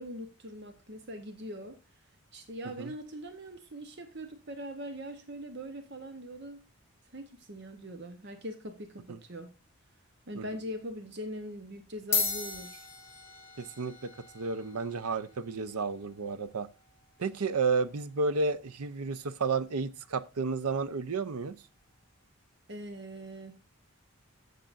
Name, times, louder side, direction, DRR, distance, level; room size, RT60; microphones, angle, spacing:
voice 1, 0.0-1.8 2.3-6.6 7.1-9.5 10.3-12.8 22.7-23.5, equal, 50° right, 0.9 m, -42 dB
sound 1, 10.5-10.8 11.6-11.7 12.0-20.6, left 5 dB, 10° left, 3.9 m, -40 dB
voice 2, 13.6-16.7 17.2-21.6, right 4 dB, 85° right, 0.6 m, -32 dB
16.0 x 6.7 x 2.5 m
head